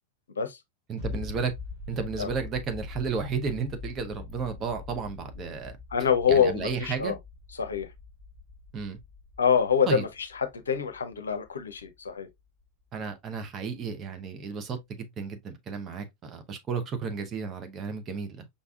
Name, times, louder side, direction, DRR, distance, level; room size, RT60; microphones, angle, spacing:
voice 1, 0.9-1.5 1.9-5.7 6.3-7.1 8.7-9.0 9.9-10.0 12.9-18.5, right 5 dB, 30° right, 0.8 m, -33 dB
sound 1, 1.0-12.3 12.6-12.7, left 3 dB, 45° right, 3.4 m, -43 dB
voice 2, 5.9-7.2 7.6-7.9 9.4-12.3, left 7 dB, 70° left, 0.6 m, -26 dB
5.2 x 3.4 x 2.3 m
figure-of-eight pair, 90°, 0 cm